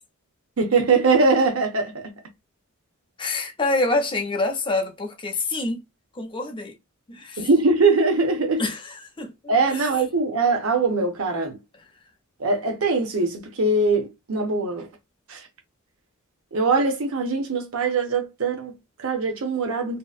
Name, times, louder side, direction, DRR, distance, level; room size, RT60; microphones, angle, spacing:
voice 1, 0.6-2.1 7.4-8.6 9.5-11.6 12.4-14.9 15.3-15.5 16.5-20.0, right 3 dB, 75° right, 0.7 m, -22 dB
voice 2, 3.2-5.8 6.1-6.7 7.1-7.5 8.6-9.8, left 2 dB, 25° left, 0.6 m, -27 dB
2.7 x 2.4 x 2.4 m
head